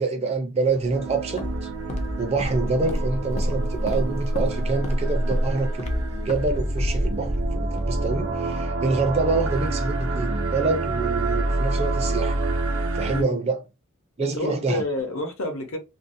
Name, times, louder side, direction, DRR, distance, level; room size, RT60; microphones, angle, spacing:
voice 1, 0.0-1.7 2.2-12.4 12.9-13.6 14.2-14.8, right 3 dB, 30° right, 0.4 m, -26 dB
Walk footsteps, 0.8-8.6, equal, 30° left, 0.4 m, -28 dB
sound 1, 0.9-13.2, right 2 dB, 75° right, 0.5 m, -28 dB
voice 2, 14.2-15.8, left 2 dB, 75° left, 0.8 m, -29 dB
2.6 x 2.1 x 2.6 m
head